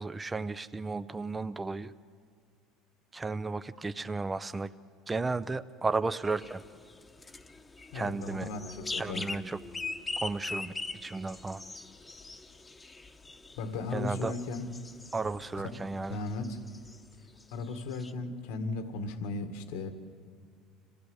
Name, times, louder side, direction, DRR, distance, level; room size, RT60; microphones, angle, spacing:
voice 1, 0.0-1.9 3.1-4.7 5.1-6.6 7.9-8.5 9.0-9.6 10.2-11.6 13.9-14.3 15.1-16.2, right 3 dB, 15° right, 13 dB, 0.5 m, -34 dB
sound 1, 6.2-15.6 15.9-17.0 17.4-17.5 17.7-18.1, left 3 dB, 15° left, 1.0 m, -42 dB
voice 2, 7.9-9.3 13.6-14.7 15.6-16.6 17.5-19.9, left 3 dB, 80° left, 7 dB, 1.7 m, -36 dB
26.5 x 16.5 x 7.9 m, 2.2 s
supercardioid pair, 110°, 0 cm